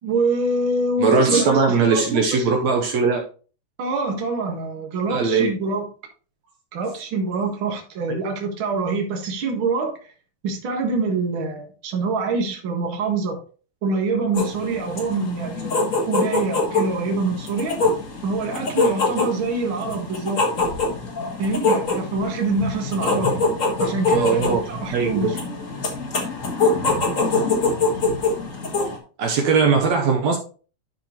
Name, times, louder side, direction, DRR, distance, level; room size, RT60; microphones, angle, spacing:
voice 1, 0.0-2.5 3.8-5.9 6.7-10.1 10.4-13.4 13.8-17.8 18.2-20.4 21.4-23.5 23.8-25.6, right 3 dB, 50° right, 3 dB, 2.1 m, -25 dB
voice 2, 1.0-3.2 5.1-5.5 24.2-24.6 24.9-25.3 29.2-30.4, right 4 dB, 75° right, 2 dB, 2.1 m, -19 dB
sound 1, 14.3-29.0, left 3 dB, 35° left, 1.5 m, -24 dB
12.0 x 5.0 x 3.0 m, 0.38 s
omnidirectional pair, 3.3 m